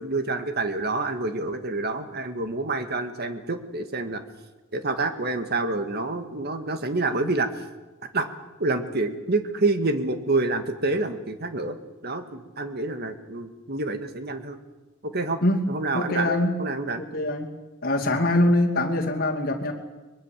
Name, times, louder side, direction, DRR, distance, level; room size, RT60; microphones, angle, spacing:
voice 1, 0.0-4.2 4.7-7.5 8.1-8.3 8.6-11.8 12.0-14.6 15.0-15.4 15.7-17.0, right 2 dB, 50° right, 8 dB, 1.9 m, -27 dB
voice 2, 15.9-16.6 17.0-17.5 17.8-19.7, left 1 dB, 45° left, -1 dB, 2.6 m, -23 dB
23.0 x 21.5 x 7.5 m, 1.2 s
head